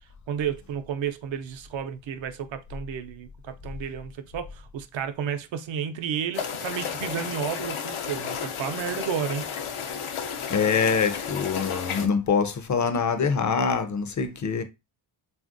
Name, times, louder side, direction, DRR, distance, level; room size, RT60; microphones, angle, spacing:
voice 1, 0.3-9.4, right 8 dB, 65° right, 0.6 m, -32 dB
sound 1, 6.3-12.1, left 7 dB, 80° left, 0.7 m, -32 dB
voice 2, 10.5-14.6, left 5 dB, 40° left, 0.5 m, -24 dB
3.2 x 2.4 x 2.5 m
cardioid pair, 85°, 49 cm